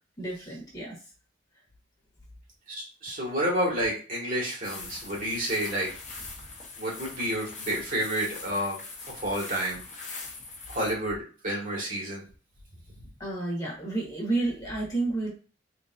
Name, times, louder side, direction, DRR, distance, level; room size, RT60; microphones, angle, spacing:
voice 1, 0.2-1.0 13.2-15.3, right 2 dB, 20° left, -3 dB, 1.6 m, -30 dB
voice 2, 2.8-5.9 6.8-8.8 9.1-10.1 10.7-12.2, right 1 dB, 45° right, -3 dB, 1.9 m, -30 dB
sound 1, 4.6-10.9, left 4 dB, 40° left, 1.2 m, -42 dB
4.0 x 3.3 x 2.7 m, 0.37 s
head